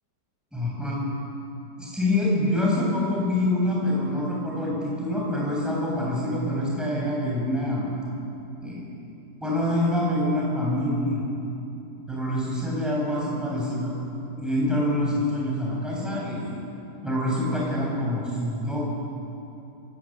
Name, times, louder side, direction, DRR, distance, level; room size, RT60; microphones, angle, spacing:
voice 1, 0.5-1.1 1.8-7.9 8.6-8.8 9.4-11.2 12.1-13.9 14.4-16.8 17.0-18.8, left 1 dB, ahead, -5 dB, 7.2 m, -26 dB
27.0 x 14.5 x 8.9 m, 2.9 s
omnidirectional pair, 1.8 m